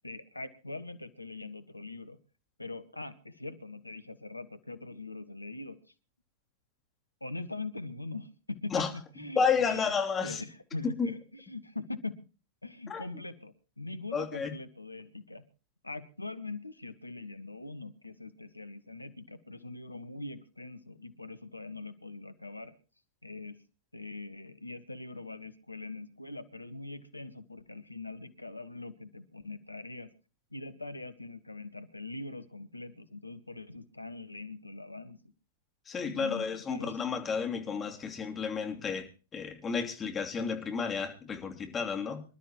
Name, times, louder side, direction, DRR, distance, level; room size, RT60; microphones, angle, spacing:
voice 1, 0.0-2.2 2.6-5.8 7.2-9.9 10.2-12.1 12.6-15.4 15.8-22.7 23.2-23.6 23.9-30.1 30.5-35.2 36.0-37.2, left 2 dB, 90° left, 1.4 m, -42 dB
voice 2, 9.3-10.4 10.8-11.1 12.9-13.0 14.1-14.5 35.9-42.2, left 5 dB, 20° left, 2.9 m, -31 dB
26.0 x 12.5 x 3.0 m
figure-of-eight pair, 100°, 0 cm